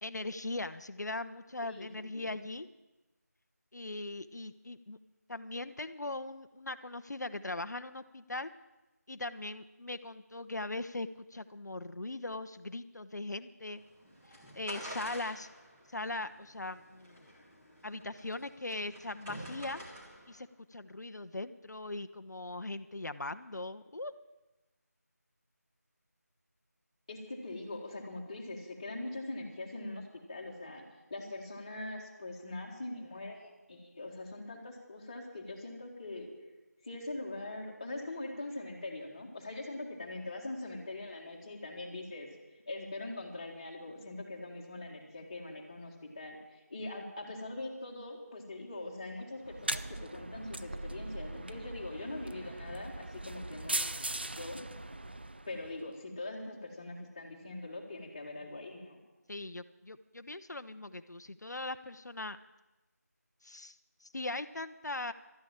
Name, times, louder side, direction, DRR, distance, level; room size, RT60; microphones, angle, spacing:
voice 1, 0.0-2.7 3.7-5.0 5.3-8.5 9.1-13.8 14.5-15.5 15.9-17.3 17.8-19.8 20.3-24.1 59.3-62.4 63.4-65.1, left 2 dB, 85° left, 10 dB, 0.8 m, -40 dB
voice 2, 1.6-2.3 27.1-30.8 31.1-36.3 36.8-42.3 42.7-53.9 54.4-54.6 55.5-59.0, left 2 dB, 20° left, -1 dB, 1.7 m, -42 dB
sound 1, 13.7-20.4, equal, 5° right, 1.2 m, -49 dB
sound 2, 49.4-55.8, right 2 dB, 35° right, 0.4 m, -39 dB
12.5 x 9.8 x 8.7 m, 1.1 s
figure-of-eight pair, 175°, 9 cm